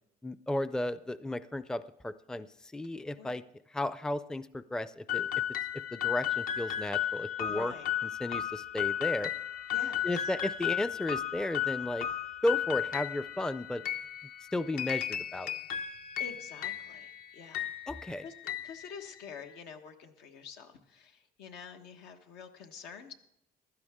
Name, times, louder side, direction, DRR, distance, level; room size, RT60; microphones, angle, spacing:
voice 1, 0.2-2.5 2.7-3.4 3.7-5.3 5.7-7.7 8.2-9.3 10.0-12.1 12.4-13.8 14.5-15.5 17.9-18.2, left 1 dB, 5° left, 15 dB, 0.4 m, -34 dB
sound 1, 5.1-19.5, left 11 dB, 60° left, 0.7 m, -35 dB
voice 2, 7.4-7.9 9.7-10.1 16.2-17.7 18.2-18.3 18.6-23.1, left 6 dB, 90° left, 5 dB, 1.3 m, -47 dB
15.0 x 12.0 x 3.6 m, 0.81 s
cardioid pair, 110°, 17 cm